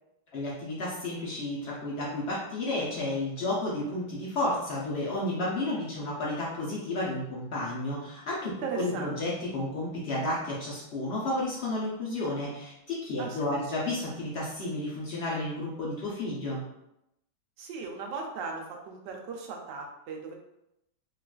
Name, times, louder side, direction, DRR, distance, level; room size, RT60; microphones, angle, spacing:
voice 1, 0.3-16.6, left 1 dB, 85° left, -5 dB, 0.5 m, -32 dB
voice 2, 8.6-9.2 13.2-13.6 17.6-20.4, right 4 dB, 80° right, 1 dB, 1.2 m, -37 dB
3.7 x 2.4 x 2.3 m, 0.84 s
omnidirectional pair, 1.9 m